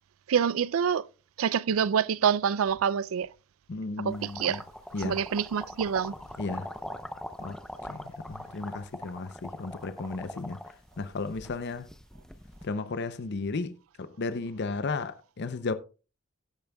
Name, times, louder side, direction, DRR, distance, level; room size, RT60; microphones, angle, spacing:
voice 1, 0.3-1.1 1.4-3.3 4.0-4.6 5.0-6.1, right 7 dB, 80° right, 0.4 m, -26 dB
voice 2, 3.7-4.6 4.9-5.2 6.4-6.7 7.4-7.6 7.9-10.6 11.0-11.9 12.6-15.7, left 3 dB, 55° left, 0.6 m, -34 dB
sound 1, 4.1-12.6, left 1 dB, 5° left, 0.6 m, -42 dB
15.5 x 8.7 x 2.3 m
head